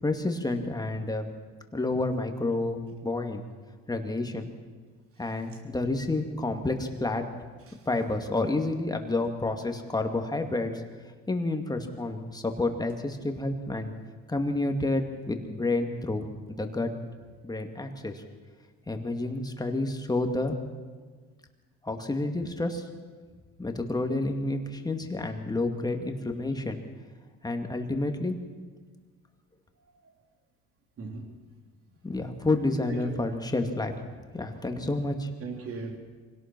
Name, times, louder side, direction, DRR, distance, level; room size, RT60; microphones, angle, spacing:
voice 1, 0.0-1.3 1.7-3.4 3.9-4.5 5.2-7.2 7.9-10.8 11.3-13.9 14.3-16.9 17.4-18.2 18.9-20.6 21.8-22.9 23.6-26.8 27.4-28.4 32.0-33.9 34.3-35.3, left 2 dB, 15° left, 5 dB, 2.3 m, -29 dB
voice 2, 31.0-31.4 32.9-33.2 34.4-34.5 35.4-36.0, right 4 dB, 50° right, 4 dB, 3.4 m, -39 dB
24.5 x 17.5 x 6.2 m, 1.5 s
cardioid pair, 105°, 29 cm